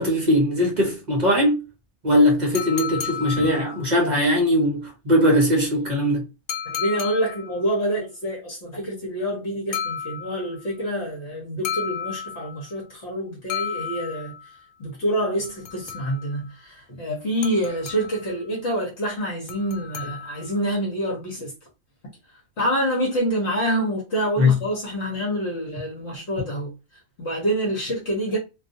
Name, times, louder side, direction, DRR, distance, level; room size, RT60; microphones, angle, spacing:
voice 1, 0.0-1.6 2.0-6.2 24.4-24.6, left 1 dB, 45° right, 0.6 m, -20 dB
sound 1, 2.6-4.0 6.5-7.6 9.7-10.6 11.7-12.7 13.5-14.5 15.4-16.4 17.4-18.3 19.5-20.6, left 8 dB, 75° left, 0.9 m, -32 dB
voice 2, 6.7-14.3 14.8-21.5 22.6-26.7 27.2-28.4, right 1 dB, 55° left, 1.2 m, -27 dB
2.5 x 2.4 x 2.5 m
omnidirectional pair, 1.4 m